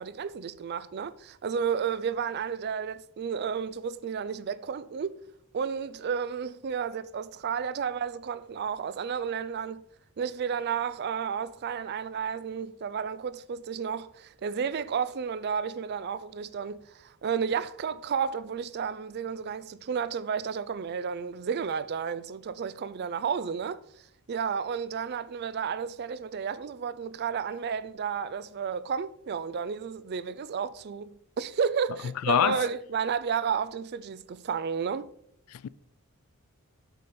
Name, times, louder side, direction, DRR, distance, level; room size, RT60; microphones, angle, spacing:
voice 1, 0.0-5.2 5.5-9.8 10.2-23.8 24.3-35.1, right 6 dB, 50° right, 0.4 m, -32 dB
voice 2, 32.2-32.6 35.5-35.7, left 9 dB, 75° left, 0.3 m, -25 dB
6.9 x 6.6 x 4.2 m
head